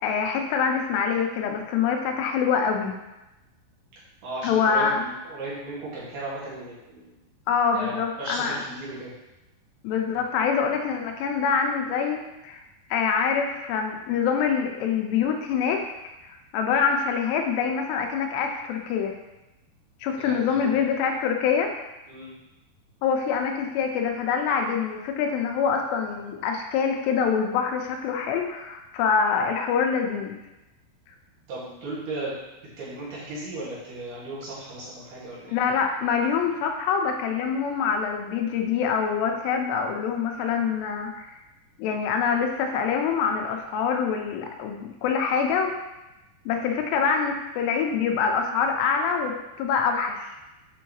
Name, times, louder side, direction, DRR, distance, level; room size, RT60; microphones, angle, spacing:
voice 1, 0.0-3.0 4.4-5.0 7.5-8.6 9.8-12.6 12.9-19.1 20.0-21.7 23.0-30.4 35.5-41.3 41.8-45.7 46.5-50.2, left 6 dB, 90° left, 3 dB, 2.8 m, -25 dB
voice 2, 4.2-7.2 7.7-9.1 20.2-20.8 22.1-22.3 31.5-32.3 32.8-35.6, right 2 dB, 70° right, -8 dB, 3.8 m, -36 dB
7.9 x 4.6 x 3.1 m, 0.98 s
omnidirectional pair, 4.9 m